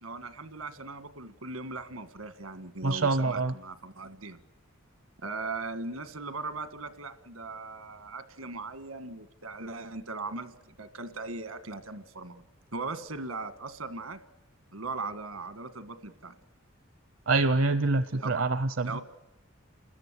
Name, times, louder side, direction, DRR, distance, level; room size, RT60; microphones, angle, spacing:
voice 1, 0.0-4.4 5.2-12.4 12.7-14.2 14.7-16.4 18.1-18.5 18.8-19.0, right 3 dB, 90° right, 10 dB, 1.7 m, -39 dB
voice 2, 2.8-3.5 17.3-19.0, right 3 dB, 70° right, 11 dB, 0.7 m, -26 dB
30.0 x 13.5 x 9.9 m, 1.0 s
head